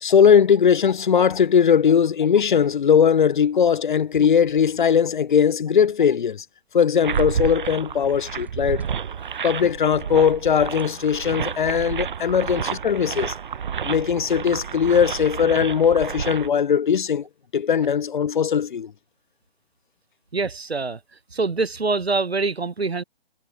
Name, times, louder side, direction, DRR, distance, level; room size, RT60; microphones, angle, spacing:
voice 1, 0.0-6.4 6.7-8.8 9.4-13.3 13.8-17.2 17.5-18.9, left 7 dB, 50° left, 0.6 m, -19 dB
sound 1, 2.8-12.1, right 4 dB, 5° right, 3.9 m, -54 dB
sound 2, 7.0-16.5, right 7 dB, 55° right, 0.7 m, -30 dB
voice 2, 20.3-21.0 21.3-23.0, right 3 dB, 85° right, 1.0 m, -24 dB
figure-of-eight pair, 140°, 31 cm